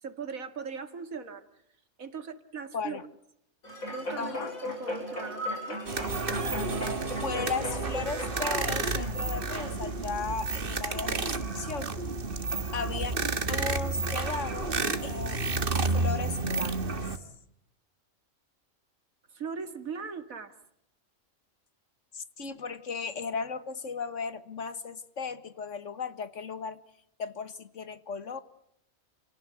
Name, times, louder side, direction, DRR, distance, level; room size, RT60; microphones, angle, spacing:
voice 1, 0.0-1.5 2.0-3.0 3.9-5.8 19.3-20.5, right 5 dB, 85° right, 10 dB, 2.5 m, -39 dB
sound 1, 3.6-10.2 10.7-10.8, equal, 80° left, 8.0 m, -37 dB
voice 2, 4.2-4.5 7.2-12.0 12.7-13.1 13.5-14.7 15.0-15.5 15.9-17.0 22.1-26.8 27.2-28.4, left 5 dB, 65° left, 13 dB, 1.8 m, -36 dB
sound 2, 5.8-17.2, right 3 dB, 40° right, 1.8 m, -31 dB
29.5 x 17.5 x 9.6 m, 0.76 s
omnidirectional pair, 1.4 m